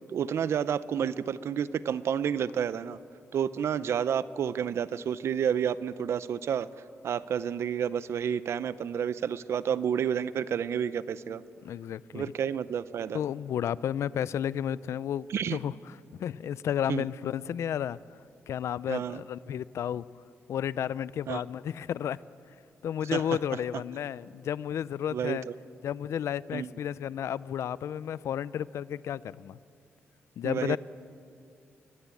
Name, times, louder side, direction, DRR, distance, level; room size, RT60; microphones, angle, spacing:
voice 1, 0.1-3.0 3.3-6.7 7.0-11.4 12.1-13.2 15.3-15.6 16.9-17.1 18.9-19.2 21.3-21.4 23.1-23.2 25.1-25.4 26.5-26.7 30.4-30.8, right 8 dB, 70° right, 16 dB, 0.6 m, -30 dB
voice 2, 11.6-12.3 13.1-18.0 18.5-20.1 20.5-22.2 22.8-25.5 25.8-29.6 30.4-30.8, left 9 dB, 85° left, 19 dB, 0.5 m, -32 dB
22.5 x 19.5 x 8.5 m, 2.5 s
wide cardioid pair, 155°, 5 cm